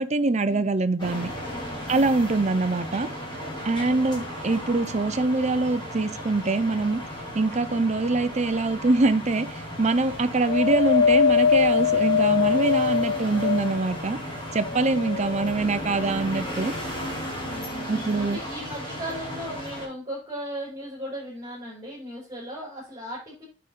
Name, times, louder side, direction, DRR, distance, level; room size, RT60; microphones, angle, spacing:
voice 1, 0.0-1.3 1.9-3.1 3.6-7.0 7.3-14.2 14.5-16.7 17.9-18.4, right 3 dB, 40° right, 0.7 m, -24 dB
sound 1, 1.0-19.9, equal, 25° left, 5.0 m, -35 dB
voice 2, 1.4-2.2 17.4-23.4, equal, 20° right, 4.7 m, -37 dB
Wind, 10.5-14.0 14.6-15.6 16.4-16.5, left 7 dB, 65° left, 0.3 m, -22 dB
9.6 x 5.1 x 4.2 m
head